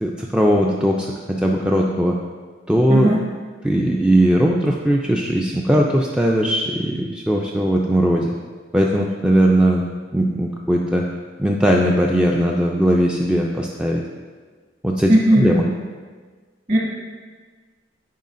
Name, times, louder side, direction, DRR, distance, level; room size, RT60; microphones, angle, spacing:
voice 1, 0.0-2.2 2.7-3.2 3.6-8.3 8.7-9.8 10.1-11.0 11.4-14.0 14.8-15.6, right 1 dB, 5° right, -1 dB, 0.3 m, -19 dB
voice 2, 15.1-15.6 16.7-16.8, right 1 dB, 40° right, -5 dB, 1.8 m, -16 dB
9.2 x 4.9 x 2.5 m, 1.5 s
head